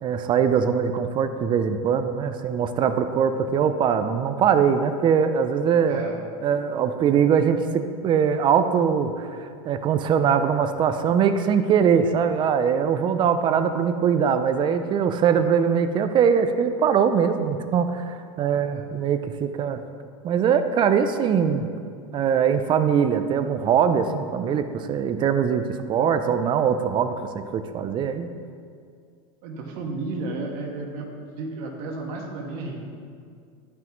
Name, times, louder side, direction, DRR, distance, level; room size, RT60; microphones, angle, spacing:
voice 1, 0.0-6.0 6.4-9.3 9.6-19.8 20.2-21.7 22.1-27.1 27.5-28.3, right 7 dB, 30° right, 9 dB, 0.4 m, -22 dB
voice 2, 5.8-6.2 18.5-18.8 29.4-31.1 31.4-32.8, right 3 dB, 60° right, 0 dB, 1.4 m, -33 dB
11.5 x 5.9 x 3.1 m, 2.2 s
supercardioid pair, 130°, 16 cm